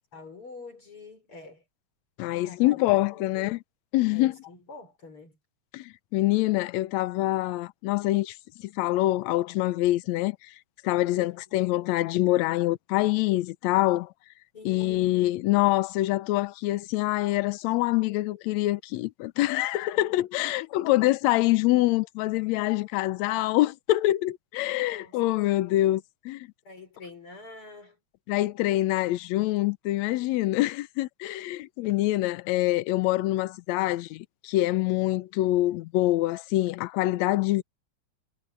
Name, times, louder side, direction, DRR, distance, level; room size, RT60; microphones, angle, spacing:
voice 1, 0.1-1.6 2.4-2.8 3.1-3.3 4.1-5.4 11.1-11.4 14.5-15.1 20.4-20.9 23.4-23.5 24.8-25.8 26.6-28.0, left 4 dB, 45° left, 6.0 m, -46 dB
voice 2, 2.2-3.6 3.9-4.4 5.7-10.4 10.8-14.1 14.7-26.5 28.3-37.6, left 17 dB, 75° left, 1.9 m, -25 dB
omnidirectional pair, 3.4 m